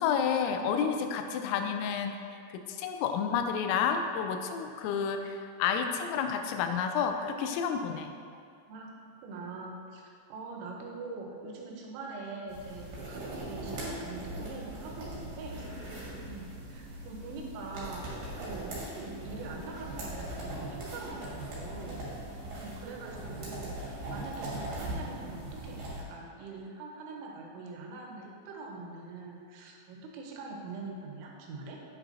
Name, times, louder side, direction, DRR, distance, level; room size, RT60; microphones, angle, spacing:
voice 1, 0.0-2.1 2.5-8.1, left 7 dB, 90° left, 6 dB, 3.2 m, -30 dB
voice 2, 8.7-10.0 10.3-15.7 16.3-22.0 22.4-31.8, right 3 dB, 80° right, 0 dB, 3.3 m, -43 dB
sound 1, 12.5-26.0, right 1 dB, 55° right, 2.8 m, -40 dB
8.8 x 7.2 x 2.8 m, 2.4 s
omnidirectional pair, 5.8 m